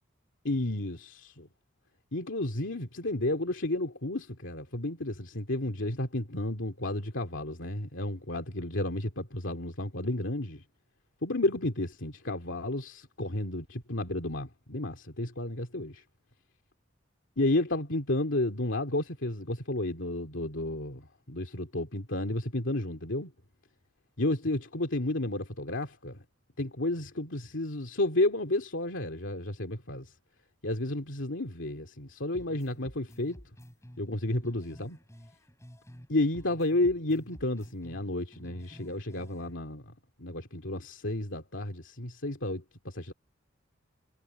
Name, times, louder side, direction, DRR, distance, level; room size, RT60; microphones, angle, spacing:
voice 1, 0.4-1.5 2.1-10.6 11.2-16.0 17.4-23.3 24.2-26.2 26.6-30.1 30.6-33.4 34.0-35.0 36.1-39.8 40.2-43.1, left 2 dB, 70° left, 2.7 m, -32 dB
sound 1, 32.3-36.1 36.3-39.5, equal, 15° left, 4.5 m, -51 dB
head